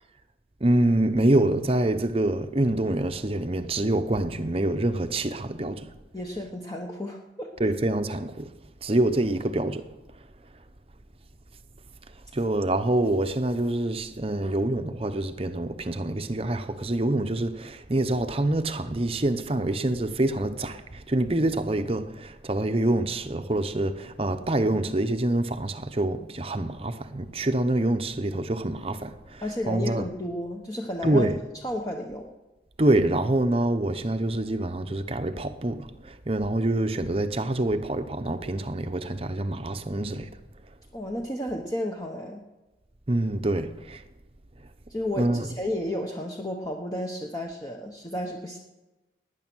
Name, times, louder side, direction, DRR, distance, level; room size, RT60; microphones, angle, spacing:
voice 1, 0.6-5.9 7.6-8.5 8.8-9.9 12.3-30.1 31.0-31.4 32.8-40.3 43.1-44.0 45.2-45.5, right 1 dB, 30° right, 0.8 m, -26 dB
voice 2, 6.1-7.5 29.4-31.3 31.6-32.3 40.9-42.4 44.9-48.6, left 1 dB, 20° left, 1.1 m, -32 dB
18.5 x 10.0 x 6.2 m
head